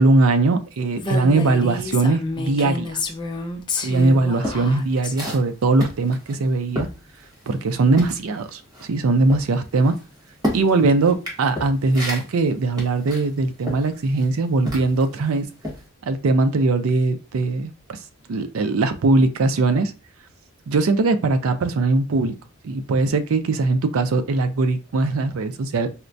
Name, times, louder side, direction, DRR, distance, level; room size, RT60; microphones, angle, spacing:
voice 1, 0.0-3.0 3.8-6.9 7.5-8.6 8.9-10.0 10.5-15.5 16.0-18.0 18.3-19.9 20.7-22.3 22.6-25.9, right 3 dB, 85° right, 0.4 m, -20 dB
Female speech woman speaking, 1.0-5.1, left 3 dB, 20° left, 0.4 m, -29 dB
sound 1, 3.9-7.7 7.9-15.2 15.6-15.9, left 1 dB, 20° right, 1.4 m, -32 dB
4.2 x 2.1 x 2.5 m
head